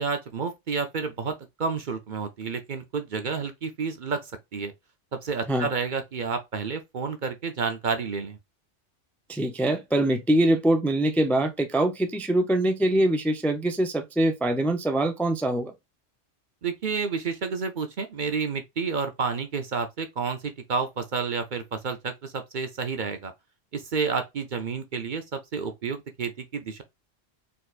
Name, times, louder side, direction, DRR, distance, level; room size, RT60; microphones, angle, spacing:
voice 1, 0.0-4.7 5.1-8.4 16.6-23.3 23.7-26.8, right 5 dB, 50° right, 0.7 m, -30 dB
voice 2, 9.3-15.7, right 1 dB, ahead, 0.5 m, -23 dB
4.4 x 3.9 x 2.4 m
omnidirectional pair, 1.1 m